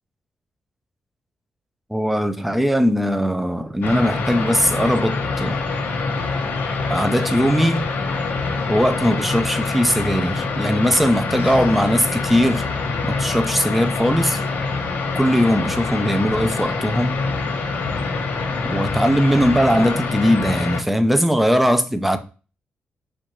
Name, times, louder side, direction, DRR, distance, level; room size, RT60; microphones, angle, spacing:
voice 1, 1.9-5.6 6.9-7.8 8.7-12.6 13.1-14.4 15.2-17.2 18.7-22.2, equal, 5° right, 0.5 m, -19 dB
sound 1, 3.8-20.8, left 4 dB, 85° left, 1.1 m, -25 dB
4.5 x 2.5 x 4.3 m
wide cardioid pair, 130°, 3 cm